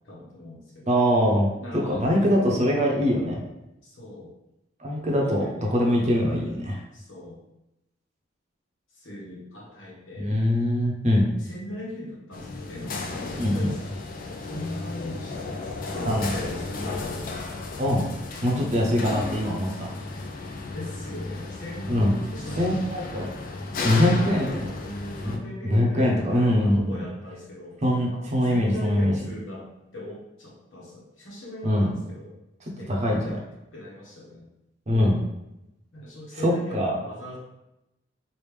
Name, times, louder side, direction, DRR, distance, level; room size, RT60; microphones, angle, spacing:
voice 1, 0.0-1.0 1.6-2.2 3.8-4.3 5.2-6.4 6.9-7.4 8.9-10.3 11.4-13.8 14.2-17.6 20.7-22.7 24.0-27.8 28.1-29.7 29.9-32.3 32.8-33.4 33.7-34.5 35.9-37.4, left 1 dB, 85° left, -5 dB, 1.2 m, -39 dB
voice 2, 0.9-1.5 1.7-3.4 4.8-5.4 5.7-6.8 10.2-11.3 13.4-13.7 16.1-16.3 17.8-18.1 18.4-19.9 21.9-22.1 22.6-23.3 23.8-24.5 25.2-25.4 25.6-27.0 27.8-29.1 31.6-31.9 32.9-33.4 34.9-35.2 36.4-37.0, equal, 40° right, -1 dB, 0.7 m, -22 dB
sound 1, 12.3-25.4, left 3 dB, 45° left, 0.4 m, -34 dB
3.3 x 2.5 x 3.2 m, 0.90 s
head